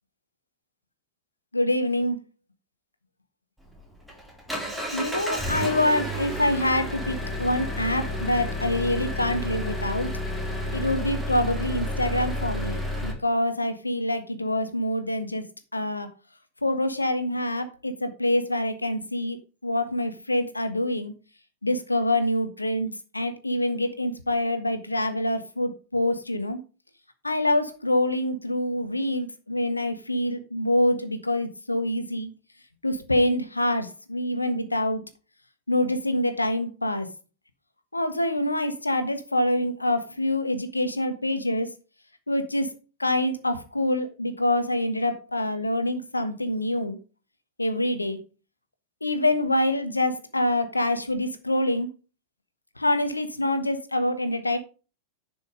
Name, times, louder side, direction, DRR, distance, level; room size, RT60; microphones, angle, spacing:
voice 1, 1.5-2.2 4.9-10.1 10.7-15.4 15.7-16.1 16.6-19.4 19.6-21.1 21.6-26.6 27.2-32.3 32.8-35.0 35.7-37.1 37.9-41.7 42.3-42.7 43.0-47.0 47.6-48.2 49.0-51.9 52.8-54.6, left 1 dB, 85° left, 1.4 m, -26 dB
Engine, 3.6-13.1, left 1 dB, ahead, 3.5 m, -31 dB
10.5 x 6.1 x 5.1 m
figure-of-eight pair, 90°, 0 cm